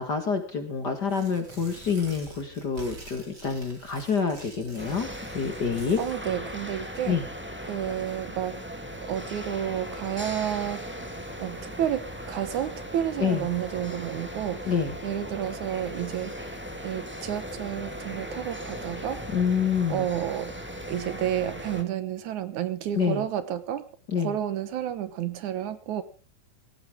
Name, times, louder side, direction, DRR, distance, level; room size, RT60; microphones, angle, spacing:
voice 1, 0.0-6.0 7.1-7.2 13.2-13.5 14.6-14.9 19.3-20.0 23.0-23.2 24.1-24.4, left 6 dB, 40° left, 6 dB, 2.0 m, -27 dB
Tearing, 1.0-6.2, right 2 dB, 30° right, 4.8 m, -47 dB
sound 1, 4.8-21.8, equal, 5° right, 1.2 m, -38 dB
voice 2, 6.0-7.2 7.7-8.6 9.0-14.7 15.0-16.3 16.8-19.2 19.9-20.5 20.9-23.8 24.2-26.0, right 10 dB, 70° right, 12 dB, 2.4 m, -31 dB
17.0 x 16.5 x 3.7 m, 0.37 s
omnidirectional pair, 3.7 m